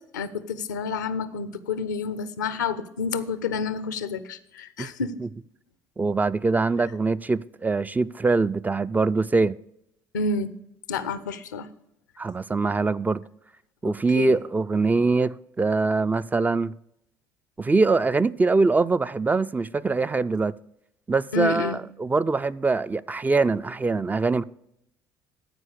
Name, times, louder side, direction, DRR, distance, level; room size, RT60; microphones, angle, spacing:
voice 1, 0.1-5.2 10.1-10.5 10.9-11.7 13.8-14.3 21.3-21.8, left 5 dB, 85° left, 0.6 m, -29 dB
voice 2, 6.0-9.6 12.2-13.2 13.8-16.7 17.6-20.5 21.1-24.4, right 3 dB, 20° right, 0.4 m, -23 dB
14.0 x 4.7 x 6.4 m
hypercardioid pair, 60°, 9 cm